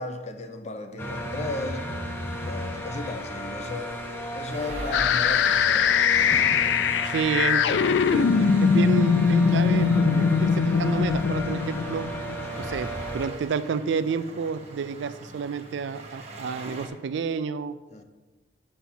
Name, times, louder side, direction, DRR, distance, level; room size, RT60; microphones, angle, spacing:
voice 1, 0.0-1.9 2.4-3.9 4.3-6.4 12.5-12.7 17.9-18.0, left 2 dB, 40° left, 0.6 m, -35 dB
sound 1, 1.0-13.3, equal, 10° left, 0.9 m, -34 dB
sound 2, 4.5-16.9, right 2 dB, 40° right, 0.9 m, -46 dB
sound 3, 4.9-12.8, left 6 dB, 80° left, 0.3 m, -22 dB
voice 2, 7.0-12.1 12.6-17.8, right 6 dB, 80° right, 0.4 m, -30 dB
7.1 x 4.4 x 5.7 m
head